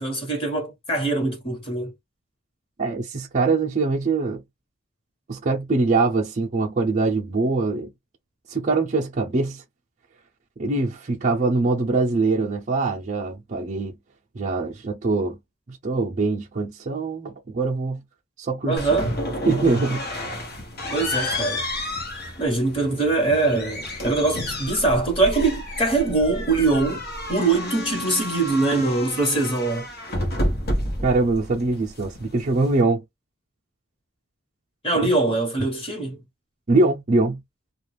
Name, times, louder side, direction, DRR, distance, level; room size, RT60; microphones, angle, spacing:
voice 1, 0.0-1.9 18.7-19.1 20.9-21.6 22.4-29.9 34.8-36.2, right 3 dB, 25° left, 1.2 m, -23 dB
voice 2, 2.8-4.4 5.3-7.9 8.5-9.6 10.6-13.9 14.3-15.4 15.7-18.0 18.4-18.8 19.5-20.0 31.0-33.0 36.7-37.4, right 3 dB, 35° right, 0.5 m, -23 dB
sound 1, 18.8-32.8, left 1 dB, 50° left, 0.9 m, -31 dB
2.3 x 2.3 x 3.2 m
head